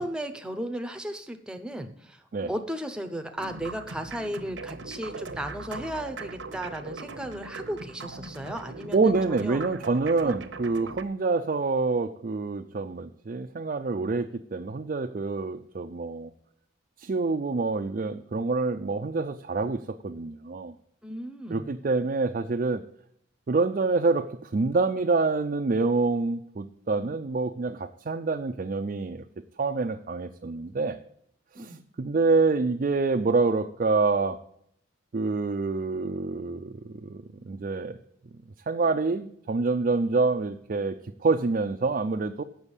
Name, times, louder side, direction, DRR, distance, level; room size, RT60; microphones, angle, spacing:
voice 1, 0.0-2.2 2.5-9.6 10.2-10.3 21.0-21.7 31.6-31.8, right 1 dB, 5° right, 6 dB, 0.7 m, -35 dB
sound 1, 3.4-11.0, right 3 dB, 75° right, 0.8 m, -40 dB
voice 2, 8.9-16.3 17.0-20.7 21.5-22.8 23.5-29.2 29.6-31.0 31.6-34.4 35.1-38.0 38.7-42.4, right 3 dB, 45° right, 5 dB, 0.4 m, -26 dB
8.2 x 6.2 x 7.1 m, 0.71 s
head